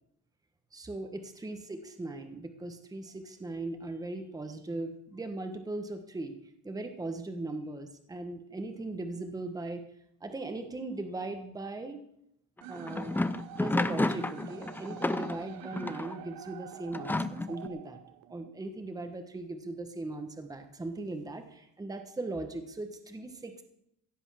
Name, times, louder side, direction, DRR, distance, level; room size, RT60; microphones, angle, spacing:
voice 1, 0.7-6.3 6.6-9.8 10.2-12.0 12.7-13.2 13.5-18.0 18.3-23.6, right 2 dB, 10° right, 6 dB, 1.2 m, -39 dB
sound 1, 12.6-16.2 16.9-17.7, left 2 dB, 5° left, 0.4 m, -31 dB
sound 2, 12.6-18.6, right 13 dB, 85° right, 0.8 m, -48 dB
16.0 x 8.1 x 6.4 m, 0.76 s
cardioid pair, 160°, 34 cm